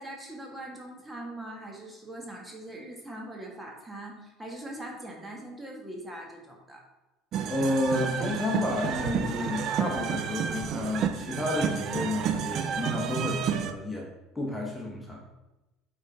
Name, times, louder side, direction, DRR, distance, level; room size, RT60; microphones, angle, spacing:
voice 1, 0.0-6.8, right 1 dB, 15° right, -1 dB, 1.7 m, -41 dB
sound 1, 7.3-13.7, right 7 dB, 50° right, 0.5 m, -30 dB
voice 2, 7.5-14.1 14.3-15.3, left 2 dB, 10° left, -2 dB, 1.5 m, -31 dB
8.0 x 3.9 x 4.0 m, 1.0 s
hypercardioid pair, 75°, 0 cm